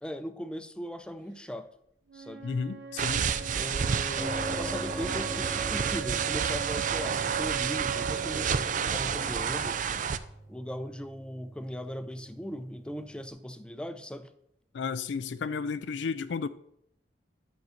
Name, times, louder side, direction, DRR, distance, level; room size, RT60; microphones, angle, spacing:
voice 1, 0.0-1.7 2.1-2.4 3.5-9.8 10.5-14.3, equal, 5° left, 0.5 m, -39 dB
Wind instrument woodwind instrument, 2.1-10.1, right 8 dB, 75° right, 1.3 m, -39 dB
voice 2, 2.4-3.3 14.7-16.5, left 5 dB, 90° left, 0.4 m, -33 dB
sound 1, 3.0-10.2, right 7 dB, 45° right, 0.4 m, -30 dB
sound 2, 4.2-13.3, equal, 15° right, 1.2 m, -42 dB
10.5 x 4.0 x 6.4 m
head